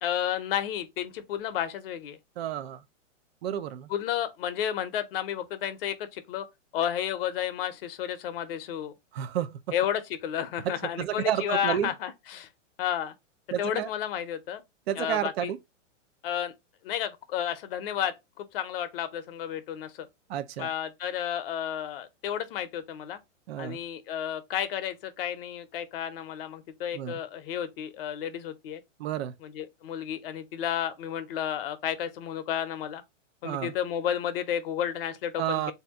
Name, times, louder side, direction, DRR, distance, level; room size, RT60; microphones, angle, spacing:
voice 1, 0.0-2.2 3.9-6.5 6.7-8.9 9.7-12.5 12.8-13.1 13.6-14.6 15.0-15.5 16.2-16.5 16.8-20.1 20.6-23.2 23.6-28.8 29.4-33.0 33.4-35.7, left 10 dB, 50° left, 0.7 m, -32 dB
voice 2, 2.4-2.8 3.4-3.9 9.1-9.6 11.0-11.9 13.5-13.9 14.9-15.6 20.3-20.7 23.5-23.8 26.9-27.2 29.0-29.3 33.4-33.7 35.4-35.7, right 11 dB, 55° right, 0.5 m, -30 dB
3.4 x 2.7 x 3.5 m
hypercardioid pair, 140°, 38 cm